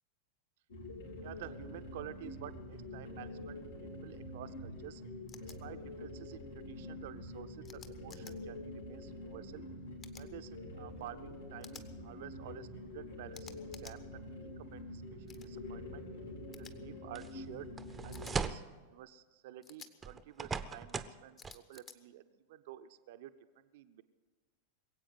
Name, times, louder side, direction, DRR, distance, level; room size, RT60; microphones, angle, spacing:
sound 1, 0.7-18.3, left 1 dB, 70° left, 3.7 m, -46 dB
voice 1, 1.2-5.0 5.4-9.7 10.1-15.0 15.3-16.1 16.5-17.7 18.0-18.6 18.9-24.0, right 12 dB, 55° right, 11 dB, 0.6 m, -51 dB
sound 2, 5.3-5.6 7.6-8.3 10.0-10.3 11.6-11.9 13.3-14.0 15.3-15.5 16.5-16.7 18.1-18.3 19.6-19.9 21.4-22.0, left 5 dB, 25° left, 1.1 m, -53 dB
sound 3, 17.1-17.3 17.8-18.7 20.0-21.2 21.4-21.5, right 5 dB, 15° right, 0.7 m, -38 dB
21.5 x 8.5 x 7.8 m, 1.3 s
figure-of-eight pair, 90°, 0 cm